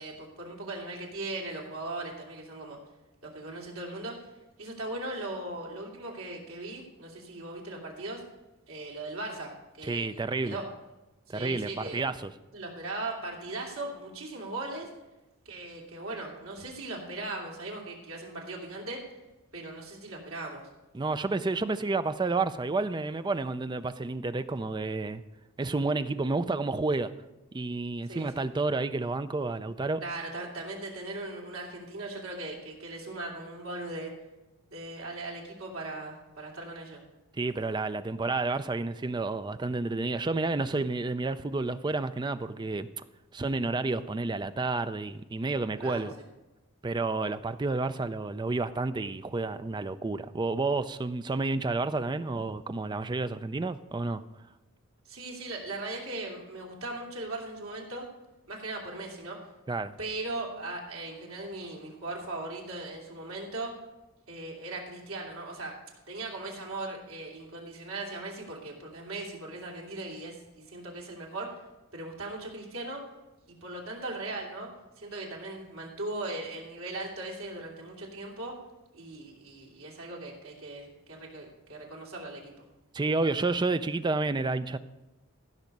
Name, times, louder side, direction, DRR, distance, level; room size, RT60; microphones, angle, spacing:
voice 1, 0.0-2.8 3.2-4.2 4.6-8.2 8.7-9.5 9.8-10.6 11.3-12.1 12.5-14.9 15.4-19.0 19.5-20.6 28.1-28.4 30.0-34.1 34.7-37.0 45.8-46.1 55.0-58.1 58.5-59.4 60.0-63.7 64.3-65.8 66.1-71.5 71.9-73.0 73.5-74.7 75.0-78.5 78.9-82.5, right 2 dB, 85° right, -2 dB, 2.8 m, -38 dB
voice 2, 9.8-10.6 11.3-12.3 20.9-25.2 25.6-27.1 27.5-30.0 37.4-42.9 43.3-46.1 46.8-54.2 59.7-59.9 82.9-84.8, right 3 dB, 20° right, 12 dB, 0.4 m, -30 dB
15.0 x 6.1 x 5.3 m, 1.0 s
head